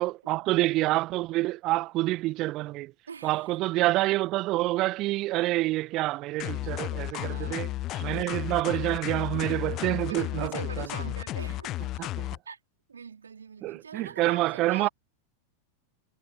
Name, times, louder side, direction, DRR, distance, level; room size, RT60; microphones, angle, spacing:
voice 1, 0.0-2.9 3.2-10.8 13.6-14.9, right 18 dB, 40° right, 1.5 m, -27 dB
voice 2, 3.1-3.6 7.1-8.4 10.0-12.2 12.5-12.6 12.9-14.9, right 6 dB, 70° right, 3.8 m, -43 dB
sound 1, 6.4-12.4, left 15 dB, 35° left, 0.7 m, -33 dB
figure-of-eight pair, 90°, 0 cm